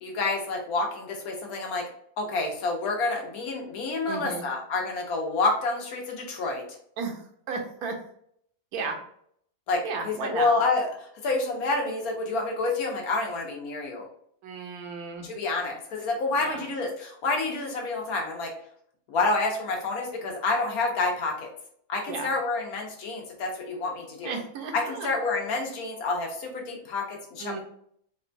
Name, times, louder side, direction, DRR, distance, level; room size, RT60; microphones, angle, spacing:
voice 1, 0.0-1.8 2.2-6.6 9.7-14.0 15.2-18.5 19.1-21.5 21.9-24.3 24.7-27.6, left 3 dB, 85° left, 1 dB, 1.3 m, -28 dB
voice 2, 4.1-4.4 7.0-7.9 8.7-9.0 9.8-10.5 14.4-15.3 16.4-16.6 22.1-22.3 24.2-25.1 27.4-27.6, right 4 dB, 85° right, 3 dB, 1.2 m, -34 dB
4.0 x 2.2 x 2.5 m, 0.66 s
omnidirectional pair, 1.5 m